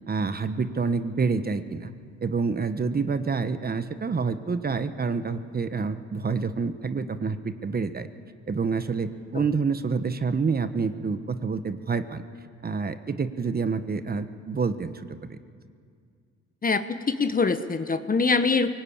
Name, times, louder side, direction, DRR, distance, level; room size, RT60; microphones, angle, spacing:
voice 1, 0.1-1.9 2.2-8.1 8.5-12.2 12.6-15.4, right 4 dB, 30° right, 10 dB, 1.1 m, -28 dB
voice 2, 16.6-18.7, left 4 dB, 30° left, 11 dB, 1.1 m, -24 dB
23.5 x 18.5 x 8.7 m, 2.2 s
cardioid pair, 90°, 30 cm